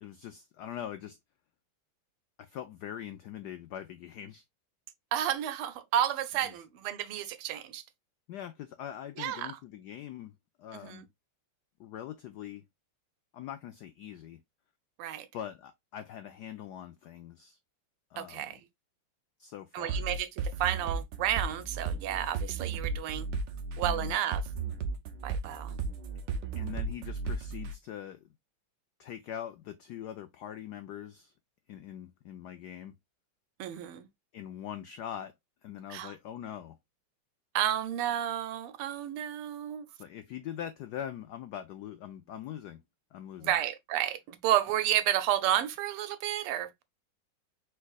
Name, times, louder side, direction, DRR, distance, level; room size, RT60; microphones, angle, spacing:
voice 1, 0.0-1.2 2.4-4.4 6.4-6.5 8.3-10.3 10.6-11.1 11.8-12.6 13.3-14.4 15.3-17.6 18.1-18.6 19.4-20.1 23.8-24.2 26.5-28.3 29.0-31.3 31.7-32.9 34.3-35.3 35.6-36.8 40.0-42.8 43.1-43.6, left 10 dB, 90° left, 0.8 m, -42 dB
voice 2, 5.1-7.8 9.2-9.5 10.8-11.0 15.0-15.3 18.2-18.6 19.7-23.3 23.8-24.4 25.2-25.7 33.6-34.1 35.9-36.1 37.5-39.9 43.4-46.8, right 11 dB, 90° right, 1.6 m, -31 dB
sound 1, 19.9-27.7, right 4 dB, 65° right, 1.4 m, -34 dB
4.6 x 4.5 x 2.3 m
omnidirectional pair, 2.4 m